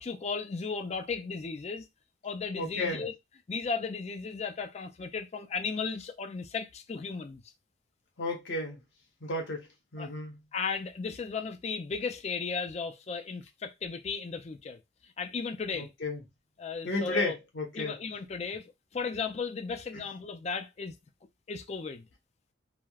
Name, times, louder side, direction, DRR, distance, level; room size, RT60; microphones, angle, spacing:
voice 1, 0.0-1.9 2.2-3.1 3.5-7.4 10.0-10.1 10.5-14.8 15.2-15.9 16.6-17.4 17.7-21.0 21.5-22.1, left 5 dB, 35° left, 0.4 m, -35 dB
voice 2, 2.6-3.1 8.2-8.8 9.2-10.4 15.7-16.2 16.8-18.0 19.9-20.0, left 2 dB, 70° left, 0.9 m, -33 dB
3.3 x 2.1 x 2.3 m
head